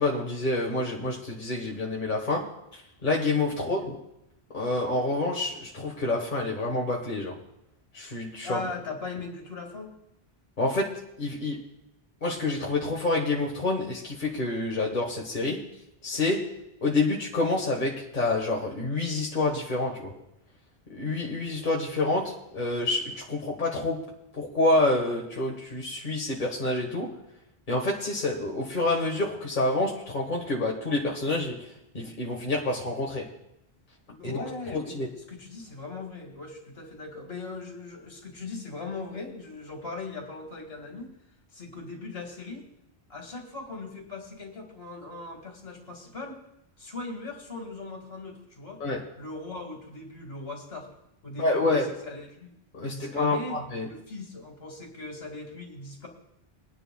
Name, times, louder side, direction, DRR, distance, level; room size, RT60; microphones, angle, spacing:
voice 1, 0.0-2.5 2.7-4.0 4.5-7.4 7.9-8.6 10.6-10.9 11.2-11.6 12.2-15.6 16.0-16.4 16.8-20.1 20.9-24.0 24.4-27.1 27.7-31.7 31.9-33.3 34.2-34.4 34.7-35.1 48.8-49.0 51.4-51.9 52.7-53.9, left 2 dB, 50° left, -1 dB, 1.7 m, -28 dB
voice 2, 3.6-3.9 8.4-10.0 34.1-41.1 41.5-42.6 43.1-46.4 46.8-48.8 49.2-50.9 51.2-52.5 52.8-53.6 53.9-56.1, left 3 dB, 75° left, 2 dB, 2.4 m, -39 dB
21.5 x 10.0 x 2.3 m, 0.85 s
omnidirectional pair, 1.1 m